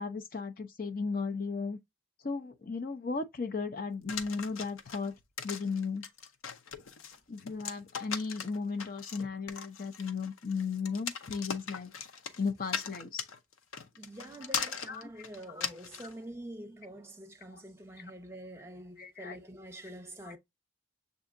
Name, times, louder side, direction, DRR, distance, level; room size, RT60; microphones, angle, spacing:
voice 1, 0.0-1.8 2.2-5.1 5.4-6.0 7.3-11.9 12.4-13.2 14.9-15.1 15.5-15.6 17.5-17.6 19.0-19.4 20.2-20.3, left 4 dB, 45° left, 0.6 m, -35 dB
sound 1, 4.1-16.1, left 6 dB, 85° left, 0.7 m, -39 dB
voice 2, 13.9-20.4, right 1 dB, 10° right, 0.8 m, -46 dB
6.8 x 2.7 x 2.5 m
head